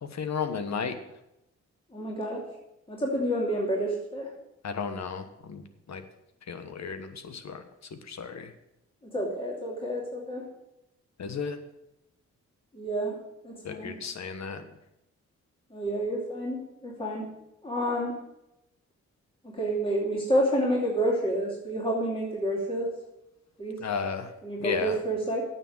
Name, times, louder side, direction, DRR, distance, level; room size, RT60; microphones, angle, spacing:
voice 1, 0.0-1.0 4.6-6.0 6.5-7.6 8.1-8.5 11.2-11.6 13.6-14.6 23.8-24.3 24.6-25.0, left 6 dB, 65° left, 9 dB, 1.3 m, -34 dB
voice 2, 1.9-2.4 2.9-4.3 9.0-10.4 12.7-13.2 13.4-13.9 15.7-17.3 17.6-18.2 19.4-22.9 23.6-23.8 24.4-25.4, right 1 dB, 20° left, -3 dB, 2.8 m, -29 dB
8.9 x 7.1 x 7.6 m, 0.89 s
cardioid pair, 65°, 29 cm